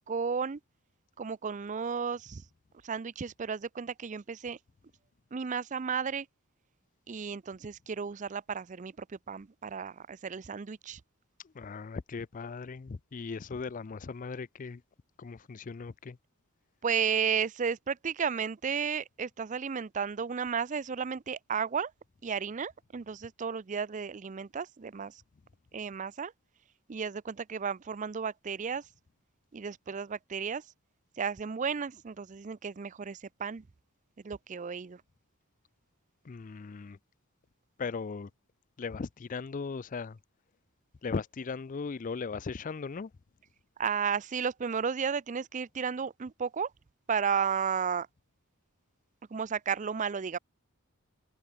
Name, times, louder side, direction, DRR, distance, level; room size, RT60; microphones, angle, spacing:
voice 1, 0.1-0.6 1.2-2.4 2.8-4.6 5.3-6.3 7.1-11.0 16.8-21.9 22.2-25.2 25.7-26.3 26.9-28.8 29.5-30.6 31.2-33.6 34.2-35.0 43.8-46.7 47.1-48.1 49.3-50.4, right 6 dB, 35° right, 0.4 m, -33 dB
voice 2, 11.5-14.8 15.2-16.2 36.2-37.0 37.8-38.3 38.8-40.2 41.0-43.1, left 4 dB, 35° left, 0.4 m, -38 dB
head